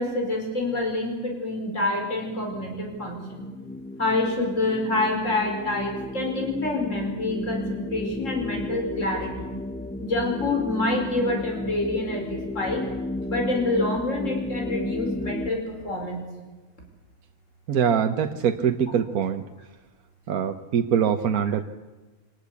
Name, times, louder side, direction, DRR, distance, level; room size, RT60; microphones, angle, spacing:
voice 1, 0.0-3.4 4.0-9.5 10.0-12.8 13.3-16.2, left 2 dB, 60° left, 2 dB, 5.3 m, -27 dB
sound 1, 1.8-15.5, left 1 dB, 5° left, 0.7 m, -34 dB
voice 2, 17.7-19.4 20.3-21.6, right 8 dB, 85° right, 7 dB, 1.5 m, -23 dB
25.0 x 18.5 x 8.4 m, 1.2 s
omnidirectional pair, 1.5 m